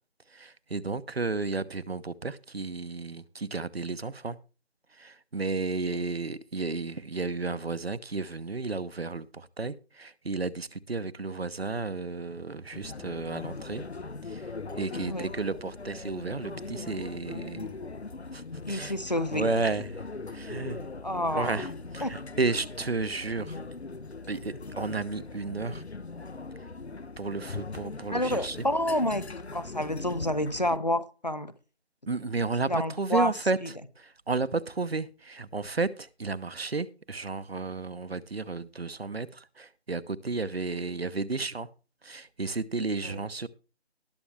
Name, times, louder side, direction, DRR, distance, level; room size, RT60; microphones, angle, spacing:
voice 1, 0.3-4.4 4.9-13.8 14.2-17.7 18.3-18.9 19.3-20.9 21.4-23.6 24.3-25.8 27.2-28.6 32.1-41.7 42.0-43.5, right 3 dB, 65° right, 1.0 m, -33 dB
sound 1, 12.7-30.8, left 3 dB, 75° left, 1.1 m, -40 dB
voice 2, 18.7-19.5 21.0-21.6 22.0-22.2 28.1-29.2 29.5-31.5 32.7-33.3 43.1-43.2, left 1 dB, 40° left, 0.8 m, -29 dB
19.0 x 6.7 x 3.3 m
figure-of-eight pair, 180°, 33 cm